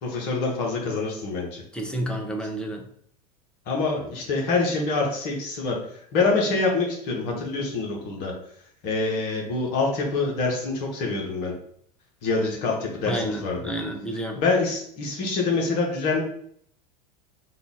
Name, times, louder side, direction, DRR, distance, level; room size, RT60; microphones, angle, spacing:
voice 1, 0.0-1.6 3.7-5.8 6.1-8.3 8.8-11.5 12.2-13.7 14.3-16.2, left 3 dB, 45° left, 0 dB, 1.3 m, -25 dB
voice 2, 1.7-2.8 13.1-14.4, right 1 dB, 5° left, 2 dB, 0.7 m, -30 dB
3.8 x 2.5 x 3.8 m, 0.64 s
figure-of-eight pair, 85°, 21 cm